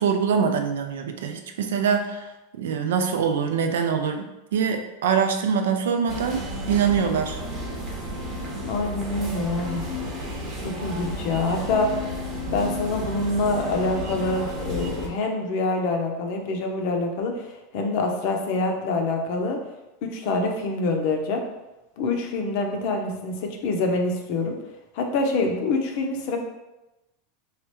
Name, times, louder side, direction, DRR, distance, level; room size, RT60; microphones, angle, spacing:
voice 1, 0.0-2.3 2.5-7.4, right 6 dB, 85° right, 6 dB, 0.4 m, -24 dB
sound 1, 6.1-15.1, left 1 dB, 45° right, 0.8 m, -32 dB
voice 2, 8.7-9.8 10.6-12.0 12.5-19.6 20.0-21.4 22.0-24.6 24.9-26.4, left 3 dB, 60° left, 3 dB, 0.6 m, -26 dB
3.2 x 2.4 x 3.0 m, 0.99 s
supercardioid pair, 125°, 0 cm